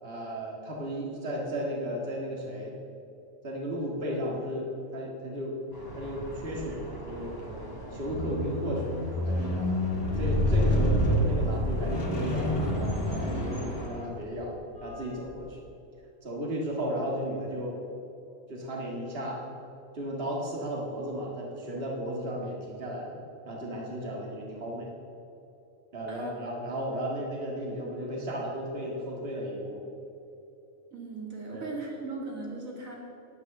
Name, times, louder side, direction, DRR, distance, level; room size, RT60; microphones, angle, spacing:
voice 1, 0.0-2.7 3.4-5.6 6.0-9.8 10.2-14.6 14.8-15.6 16.2-17.8 18.5-19.4 19.9-23.2 23.5-24.9 25.9-29.9 31.5-31.7, equal, 45° right, -2 dB, 2.0 m, -34 dB
sound 1, 5.7-13.9, right 1 dB, 15° right, 2.4 m, -43 dB
Squeak, 8.0-14.4 15.2-15.3, equal, 45° left, 1.9 m, -28 dB
voice 2, 30.9-32.9, right 3 dB, 85° right, -3 dB, 2.8 m, -38 dB
9.4 x 9.4 x 6.8 m, 2.8 s
omnidirectional pair, 1.4 m